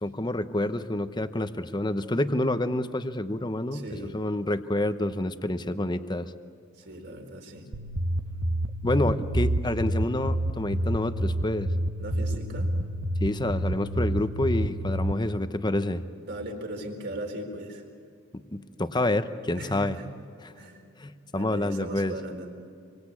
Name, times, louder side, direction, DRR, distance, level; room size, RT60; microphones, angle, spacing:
voice 1, 0.0-3.8 4.1-6.3 8.8-11.7 13.2-16.0 18.3-19.9 20.4-20.5 21.0-22.1, left 1 dB, 20° left, 10 dB, 0.9 m, -28 dB
voice 2, 3.7-4.1 6.7-7.7 12.0-12.7 16.3-17.9 19.5-20.0 20.6-20.8 21.3-22.5, right 1 dB, 55° right, 2 dB, 4.2 m, -38 dB
sound 1, 7.7-15.1, right 1 dB, 80° right, 1.1 m, -28 dB
28.0 x 24.0 x 8.5 m, 2.3 s
head